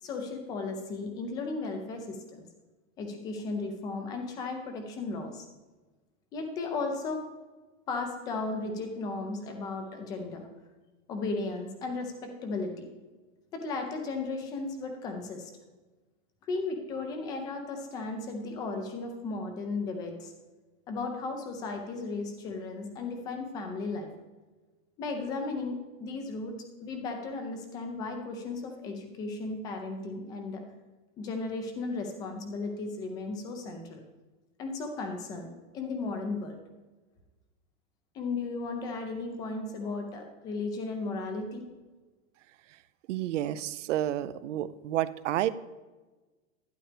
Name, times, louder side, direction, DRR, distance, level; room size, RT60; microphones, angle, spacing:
voice 1, 0.0-2.4 3.0-5.5 6.3-7.2 7.9-10.5 11.1-12.9 13.5-15.5 16.4-20.3 20.9-24.1 25.0-30.6 31.2-34.0 34.6-36.6 38.1-41.6, left 3 dB, 10° left, 4 dB, 0.4 m, -35 dB
voice 2, 43.1-45.5, right 13 dB, 60° right, 15 dB, 0.6 m, -30 dB
11.5 x 10.5 x 3.4 m, 1.2 s
supercardioid pair, 170°, 41 cm